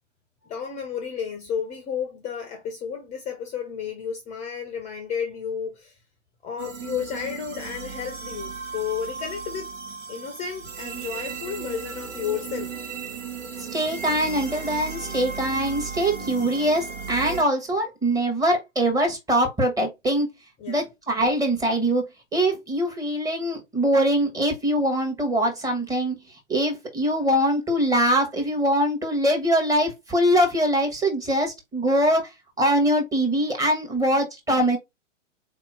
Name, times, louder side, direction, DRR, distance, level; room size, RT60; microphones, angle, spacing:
voice 1, 0.5-6.0 6.4-9.7 10.1-12.7 20.6-20.8, left 7 dB, 20° left, 0.7 m, -32 dB
sound 1, 6.6-17.4, right 5 dB, 75° right, 1.3 m, -35 dB
voice 2, 13.6-20.3 20.7-22.1 22.3-34.8, right 1 dB, 10° right, 1.3 m, -23 dB
4.1 x 2.9 x 3.6 m
figure-of-eight pair, 115°, 38 cm